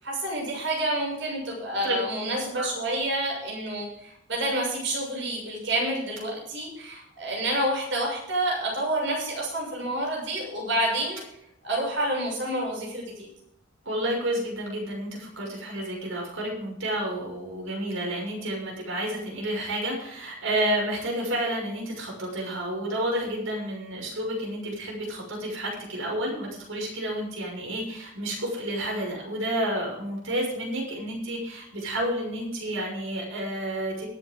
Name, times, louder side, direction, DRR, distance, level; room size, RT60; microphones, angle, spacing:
voice 1, 0.0-11.2 11.6-13.3, right 1 dB, 65° right, -2 dB, 6.9 m, -28 dB
voice 2, 13.8-34.1, right 1 dB, 85° right, -2 dB, 6.3 m, -30 dB
23.0 x 8.3 x 3.8 m, 0.78 s
head